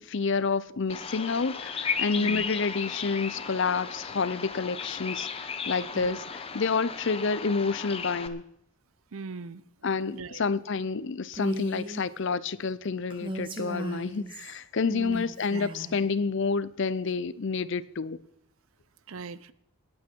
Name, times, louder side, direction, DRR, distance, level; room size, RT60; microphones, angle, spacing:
voice 1, 0.0-8.4 9.8-18.2, left 4 dB, 55° left, 0.5 m, -29 dB
Bird vocalization bird call bird song, 0.9-8.3, left 5 dB, 25° left, 0.8 m, -35 dB
voice 2, 9.1-9.6 10.1-10.4 14.9-15.2 15.5-15.7 19.1-19.5, right 4 dB, 70° right, 0.6 m, -39 dB
Female speech woman speaking, 11.3-12.0 13.1-14.6 15.1-16.0, right 1 dB, 20° right, 1.6 m, -36 dB
20.5 x 8.6 x 4.5 m
head